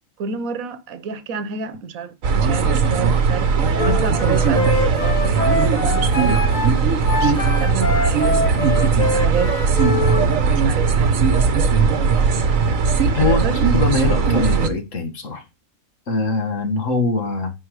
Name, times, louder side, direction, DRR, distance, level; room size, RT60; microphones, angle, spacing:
voice 1, 0.2-3.5 3.8-8.3 9.1-9.6 9.9-11.3 13.2-13.6, right 6 dB, 90° right, 1.3 m, -29 dB
sound 1, 2.2-14.7, right 5 dB, 75° right, 1.5 m, -18 dB
Wind instrument woodwind instrument, 3.8-10.3, left 3 dB, 40° left, 1.0 m, -24 dB
voice 2, 13.7-15.4 16.1-17.5, left 3 dB, 65° left, 2.0 m, -22 dB
9.7 x 4.5 x 4.8 m
omnidirectional pair, 1.4 m